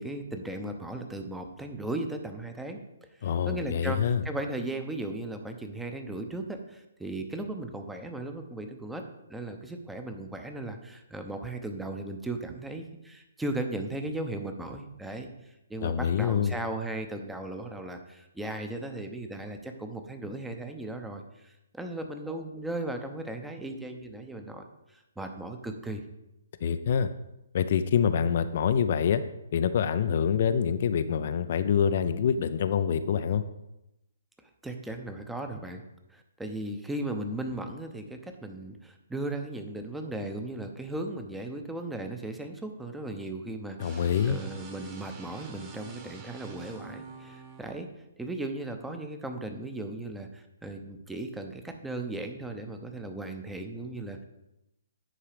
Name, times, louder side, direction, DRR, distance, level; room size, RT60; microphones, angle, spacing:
voice 1, 0.0-2.8 3.2-9.0 9.3-24.6 24.9-26.0 34.6-35.8 36.1-47.9 48.2-54.2, right 2 dB, 5° right, 5 dB, 0.8 m, -37 dB
voice 2, 3.2-4.2 15.8-16.5 26.6-27.1 27.5-29.2 29.5-33.4 43.8-44.4, left 7 dB, 45° left, 11 dB, 0.4 m, -26 dB
sound 1, 43.8-47.8, right 4 dB, 20° right, 1.3 m, -46 dB
10.0 x 4.7 x 5.0 m, 0.91 s
figure-of-eight pair, 130°, 0 cm